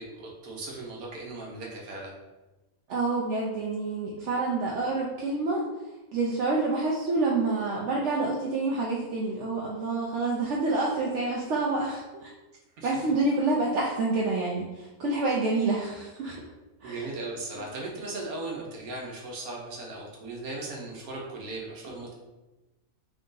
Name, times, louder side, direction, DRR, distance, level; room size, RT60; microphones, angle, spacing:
voice 1, 0.0-2.1 12.8-13.1 16.8-22.1, right 2 dB, 85° right, -2 dB, 1.4 m, -37 dB
voice 2, 2.9-5.6 6.1-12.3 12.8-16.4 16.8-17.0, right 3 dB, 65° right, -3 dB, 0.8 m, -28 dB
3.7 x 2.6 x 3.7 m, 1.1 s
omnidirectional pair, 1.5 m